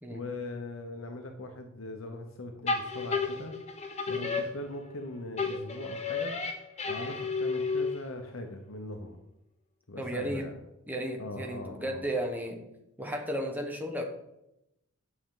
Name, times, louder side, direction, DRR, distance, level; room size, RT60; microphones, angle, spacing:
voice 1, 0.1-3.6 4.1-6.4 6.9-9.2 9.9-10.5 11.2-12.0, left 2 dB, 65° left, 4 dB, 0.9 m, -40 dB
sound 1, 2.7-5.0 5.4-8.2, left 4 dB, 30° left, 1.0 m, -32 dB
voice 2, 10.0-10.4 10.9-12.6 13.0-14.0, right 1 dB, 10° right, 2 dB, 1.1 m, -34 dB
9.8 x 6.5 x 3.8 m, 0.86 s
head